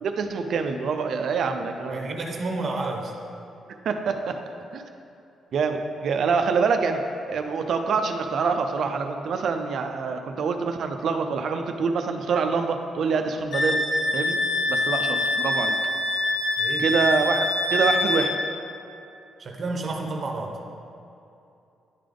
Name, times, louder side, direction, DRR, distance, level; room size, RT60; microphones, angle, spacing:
voice 1, 0.0-2.2 3.8-4.4 4.7-4.8 5.5-7.0 7.3-13.8 14.1-14.4 14.7-15.7 16.8-18.3, right 5 dB, 60° right, 6 dB, 0.4 m, -25 dB
voice 2, 1.9-3.1 16.6-16.9 19.4-20.6, right 2 dB, 40° right, 1 dB, 0.8 m, -30 dB
Wind instrument woodwind instrument, 13.5-18.3, left 2 dB, 70° left, 1.1 m, -24 dB
10.0 x 3.4 x 3.8 m, 2.7 s
cardioid pair, 125°, 0 cm